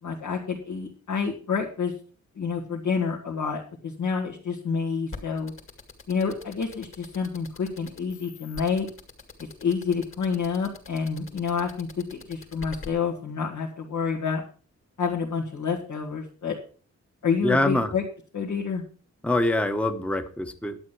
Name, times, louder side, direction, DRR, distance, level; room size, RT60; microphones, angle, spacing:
voice 1, 0.0-1.9 2.4-5.5 6.1-8.9 9.6-14.4 15.0-16.5 17.2-18.0 18.3-18.8, left 5 dB, 85° left, -2 dB, 2.2 m, -28 dB
sound 1, 5.1-12.9, left 4 dB, 45° left, 2.2 m, -42 dB
voice 2, 17.4-17.9 19.2-20.8, left 1 dB, 5° left, 7 dB, 0.9 m, -24 dB
11.5 x 8.8 x 5.8 m, 0.40 s
wide cardioid pair, 150°, 29 cm